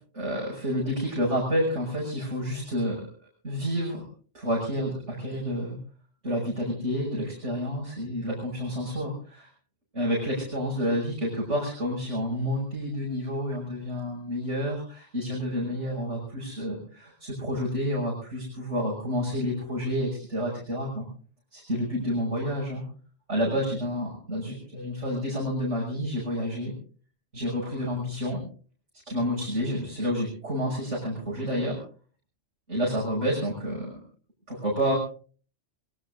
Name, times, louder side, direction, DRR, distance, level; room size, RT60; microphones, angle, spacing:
voice 1, 0.0-3.0 3.4-4.0 4.3-5.8 6.2-9.5 9.9-21.1 21.5-22.8 23.3-26.7 27.3-28.4 29.1-31.8 32.7-34.0 34.5-34.9, equal, 85° right, -5 dB, 6.5 m, -29 dB
24.5 x 22.0 x 2.6 m, 0.42 s
omnidirectional pair, 1.2 m